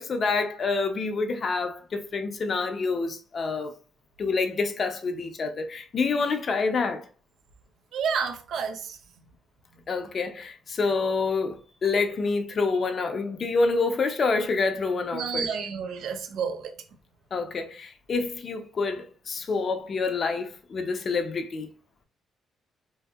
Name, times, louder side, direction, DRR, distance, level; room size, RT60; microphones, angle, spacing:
voice 1, 0.0-3.7 4.2-7.0 9.9-15.6 17.3-21.7, left 4 dB, 45° left, 0.5 m, -27 dB
voice 2, 7.9-9.0 15.1-16.6, right 6 dB, 70° right, 0.4 m, -30 dB
2.8 x 2.6 x 2.3 m
cardioid pair, 90°, 0 cm